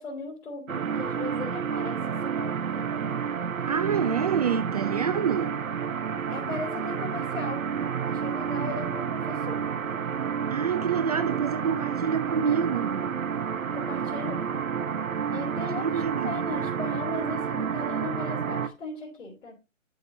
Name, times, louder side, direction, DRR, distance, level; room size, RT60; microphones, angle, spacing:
voice 1, 0.0-3.1 6.3-7.6 8.0-9.7 13.7-14.4 15.3-19.5, left 3 dB, 65° left, 3.4 m, -37 dB
sound 1, 0.7-18.7, right 7 dB, 85° right, 0.9 m, -30 dB
voice 2, 3.7-5.6 10.5-13.1 15.8-16.4, right 7 dB, 30° right, 0.5 m, -27 dB
11.5 x 5.1 x 2.7 m
figure-of-eight pair, 140°, 40 cm